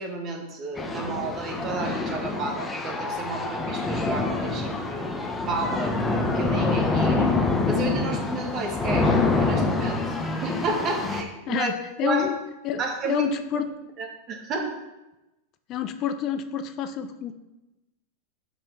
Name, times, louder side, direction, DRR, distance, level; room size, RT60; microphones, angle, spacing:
voice 1, 0.0-5.1 5.4-7.3 7.6-11.7 12.0-12.3 12.8-13.6 14.0-14.7, right 3 dB, 35° right, 2 dB, 1.7 m, -32 dB
sound 1, 0.8-11.2, left 3 dB, 15° left, 0.9 m, -26 dB
voice 2, 11.5-12.3 12.6-13.7 15.7-17.3, left 8 dB, 40° left, 9 dB, 0.6 m, -28 dB
5.9 x 5.4 x 5.9 m, 0.99 s
hypercardioid pair, 115°, 0 cm